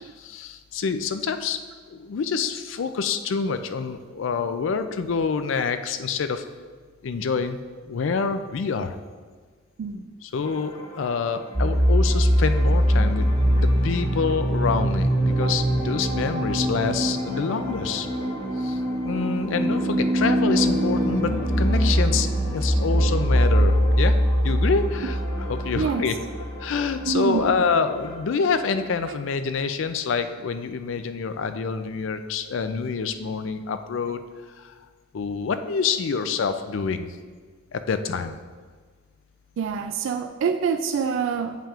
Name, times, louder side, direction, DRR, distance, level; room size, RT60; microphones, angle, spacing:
voice 1, 0.2-1.6 1.9-6.4 7.0-7.6 7.9-9.0 10.2-18.1 18.6-24.2 24.4-25.2 25.5-26.1 26.6-34.2 34.6-34.7 35.1-37.1 37.7-38.4, left 5 dB, 75° left, 9 dB, 0.4 m, -27 dB
sound 1, 10.4-28.2, left 1 dB, 20° left, 1.0 m, -36 dB
sound 2, 11.6-27.1, equal, 25° right, 0.5 m, -22 dB
voice 2, 25.7-26.2 27.1-27.6 29.1-29.2 39.6-41.6, right 6 dB, 75° right, 7 dB, 0.3 m, -26 dB
8.8 x 5.6 x 2.4 m, 1.5 s
head